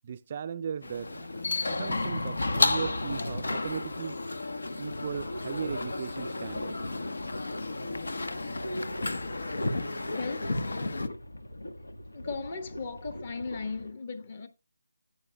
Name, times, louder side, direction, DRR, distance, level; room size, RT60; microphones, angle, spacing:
voice 1, 0.0-1.3 1.6-4.2 4.8-6.7, right 7 dB, 30° right, 0.4 m, -37 dB
sound 1, 0.8-11.1, left 2 dB, 70° left, 1.1 m, -32 dB
sound 2, 4.8-13.9, left 1 dB, 90° left, 1.3 m, -43 dB
voice 2, 10.1-10.6 12.1-14.5, left 4 dB, 35° left, 1.3 m, -37 dB
14.0 x 8.4 x 2.2 m
figure-of-eight pair, 165°, 0 cm